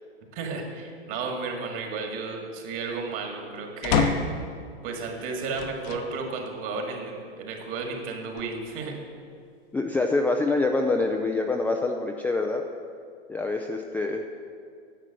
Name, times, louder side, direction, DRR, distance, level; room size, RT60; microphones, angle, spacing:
voice 1, 0.3-4.2 4.8-9.0, right 4 dB, 40° right, 2 dB, 2.1 m, -33 dB
sound 1, 3.8-4.5 5.5-6.1 6.7-6.8 8.1-8.9, left 6 dB, 45° left, 0.9 m, -27 dB
voice 2, 9.7-12.6 13.3-14.3, left 3 dB, 5° left, 2 dB, 0.4 m, -25 dB
10.0 x 7.3 x 6.6 m, 2.3 s
hypercardioid pair, 100°, 31 cm